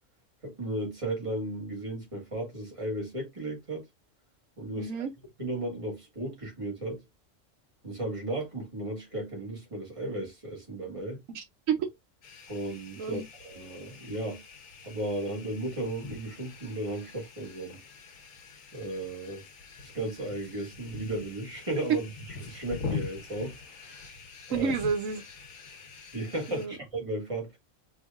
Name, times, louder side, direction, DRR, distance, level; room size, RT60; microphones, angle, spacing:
voice 1, 0.4-3.9 4.6-5.0 5.4-7.0 7.8-11.2 12.5-14.4 14.8-17.8 18.7-19.4 19.8-22.1 22.4-23.6 23.8-24.2 24.5-24.7 26.1-27.6, right 1 dB, 25° right, 1.7 m, -35 dB
voice 2, 4.7-5.1 11.3-11.9 13.0-13.2 24.5-25.2 26.5-26.8, right 6 dB, 80° right, 1.1 m, -30 dB
sound 1, 12.2-26.7, left 5 dB, 90° left, 1.3 m, -44 dB
4.5 x 2.9 x 2.3 m
omnidirectional pair, 1.3 m